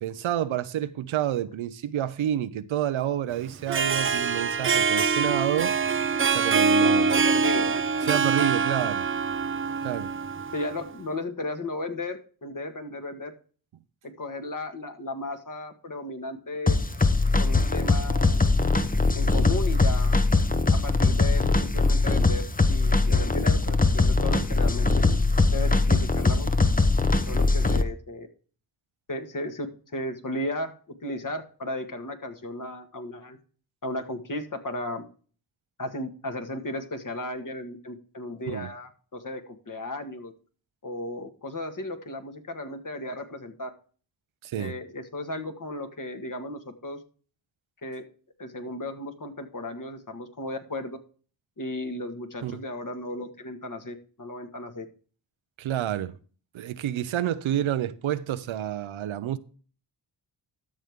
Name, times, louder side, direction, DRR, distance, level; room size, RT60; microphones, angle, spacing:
voice 1, 0.0-5.9 6.3-7.3 8.1-9.1 9.8-10.1 38.5-38.7 44.4-44.7 52.4-52.6 55.6-56.1 56.5-59.4, right 11 dB, 85° right, 0.7 m, -29 dB
Harp, 3.5-10.9, right 5 dB, 25° right, 0.5 m, -24 dB
voice 2, 6.8-7.8 10.5-13.3 14.0-16.8 17.4-18.5 19.1-20.2 20.7-24.9 25.5-26.5 27.3-28.3 29.1-29.7 29.9-33.4 33.8-35.0 35.8-40.3 40.8-43.7 44.6-47.0 47.8-48.0 48.4-51.0 51.6-54.9, left 1 dB, 40° left, 1.8 m, -35 dB
sound 1, 16.7-27.8, left 3 dB, 20° left, 0.9 m, -21 dB
13.0 x 6.4 x 3.6 m
cardioid pair, 45°, 47 cm